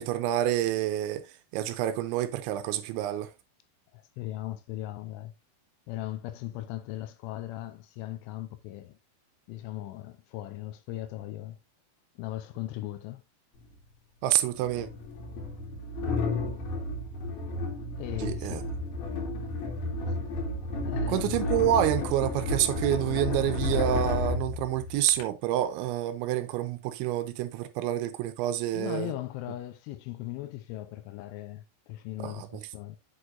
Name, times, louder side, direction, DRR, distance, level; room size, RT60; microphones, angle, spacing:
voice 1, 0.0-3.3 14.2-14.9 18.2-18.6 21.1-29.1 32.2-32.5, right 12 dB, 85° right, 2.8 m, -28 dB
voice 2, 3.9-5.3 5.9-9.0 9.5-11.6 12.2-13.2 18.0-18.7 20.8-21.4 28.7-33.0, left 14 dB, 80° left, 3.1 m, -38 dB
sound 1, 13.6-13.7 14.6-25.2, left 2 dB, 65° left, 3.7 m, -32 dB
8.0 x 6.6 x 2.6 m
omnidirectional pair, 5.7 m